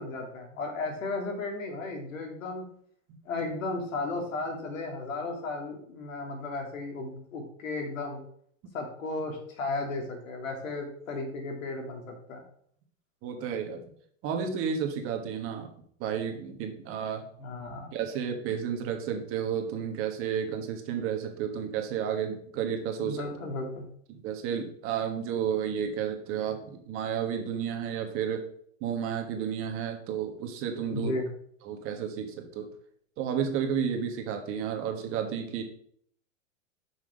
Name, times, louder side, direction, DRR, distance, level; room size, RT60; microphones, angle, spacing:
voice 1, 0.0-2.6 3.3-8.2 8.7-12.4 17.4-17.9 23.0-23.8 30.9-31.3, left 3 dB, 80° left, 2 dB, 2.7 m, -34 dB
voice 2, 13.2-13.8 14.2-15.7 16.0-17.2 17.9-23.3 24.1-28.4 28.8-31.1 31.6-32.7 33.2-35.6, right 8 dB, 35° right, 4 dB, 1.4 m, -32 dB
6.1 x 5.7 x 5.0 m, 0.63 s
hypercardioid pair, 135°, 39 cm